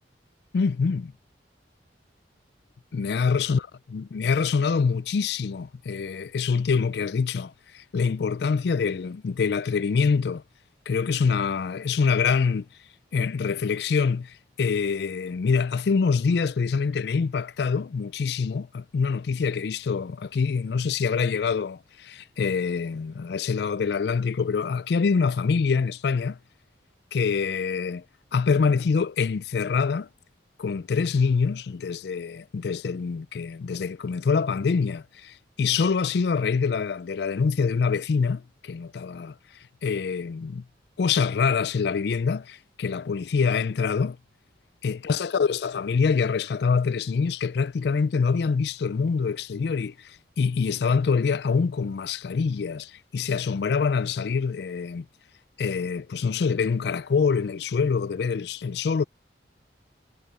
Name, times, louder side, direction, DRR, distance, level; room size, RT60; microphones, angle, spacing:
voice 1, 0.5-1.1 2.9-3.7 3.9-10.4 10.9-12.7 13.1-26.4 27.1-28.0 28.3-30.1 30.6-39.3 39.8-40.6 41.0-44.2 44.8-55.1 55.6-59.0, left 5 dB, 65° left, 0.4 m, -25 dB
head